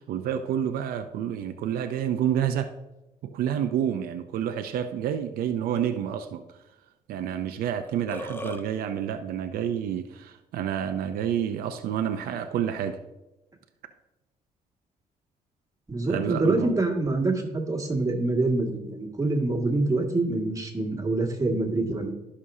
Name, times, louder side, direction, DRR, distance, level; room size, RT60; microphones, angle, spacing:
voice 1, 0.1-2.7 3.2-6.4 7.1-13.0 16.1-16.8, right 9 dB, 85° right, 8 dB, 0.5 m, -29 dB
Burping eructation, 7.4-7.5 7.8-8.6, left 2 dB, 15° left, 0.8 m, -36 dB
voice 2, 15.9-22.1, right 2 dB, 25° right, -1 dB, 2.0 m, -25 dB
14.0 x 6.1 x 2.7 m, 0.99 s
cardioid pair, 85°, 15 cm